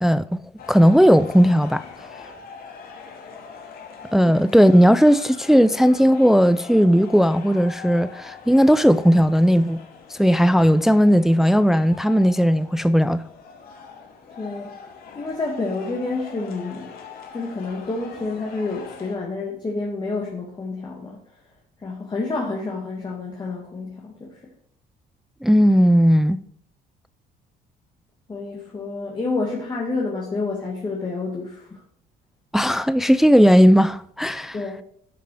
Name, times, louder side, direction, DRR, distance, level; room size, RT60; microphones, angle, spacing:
voice 1, 0.0-0.4 0.7-1.8 4.1-9.8 10.1-13.2 25.4-26.4 32.5-34.6, equal, ahead, 0.4 m, -16 dB
sound 1, 0.6-19.2, left 6 dB, 60° left, 2.5 m, -42 dB
voice 2, 14.4-14.8 15.1-16.9 17.3-21.2 21.8-24.4 28.3-31.8 34.5-34.8, left 3 dB, 25° left, 2.4 m, -29 dB
12.5 x 6.0 x 4.8 m
cardioid pair, 110°, 17 cm